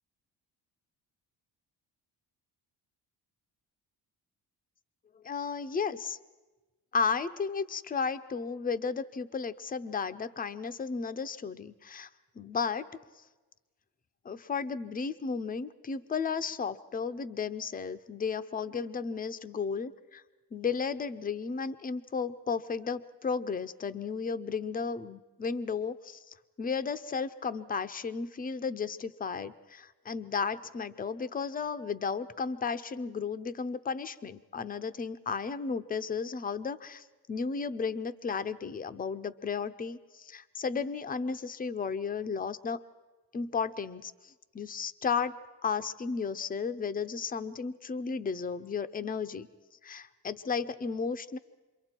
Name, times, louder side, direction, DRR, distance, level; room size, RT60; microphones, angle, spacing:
voice 1, 5.2-6.2 6.9-12.1 12.4-12.9 14.2-20.2 20.5-42.8 43.3-45.4 45.6-49.5 49.8-51.4, left 5 dB, 20° left, 11 dB, 0.6 m, -34 dB
28.5 x 23.0 x 4.5 m, 1.2 s
cardioid pair, 115°, 40 cm